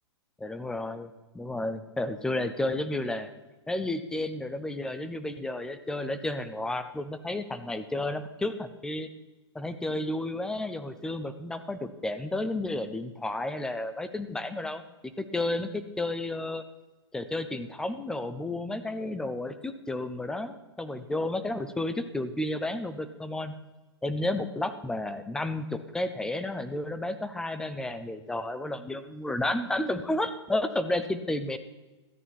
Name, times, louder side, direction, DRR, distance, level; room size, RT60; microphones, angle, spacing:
voice 1, 0.4-3.3 3.7-9.1 9.5-16.6 17.1-23.5 24.0-31.6, left 1 dB, 5° left, 11 dB, 0.5 m, -32 dB
13.5 x 8.9 x 4.3 m, 1.1 s
hypercardioid pair, 145°, 15 cm